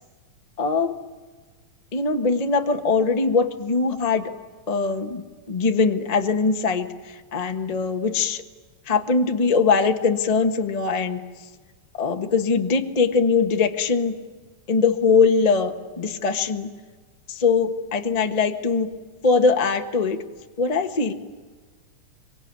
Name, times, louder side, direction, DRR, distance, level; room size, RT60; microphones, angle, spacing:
voice 1, 0.6-0.9 1.9-4.3 4.7-8.4 8.9-11.2 12.0-14.2 14.7-16.7 17.3-18.9 19.2-20.2 20.6-21.1, left 4 dB, 70° left, 5 dB, 0.3 m, -21 dB
25.0 x 24.0 x 9.7 m, 1.4 s
omnidirectional pair, 3.4 m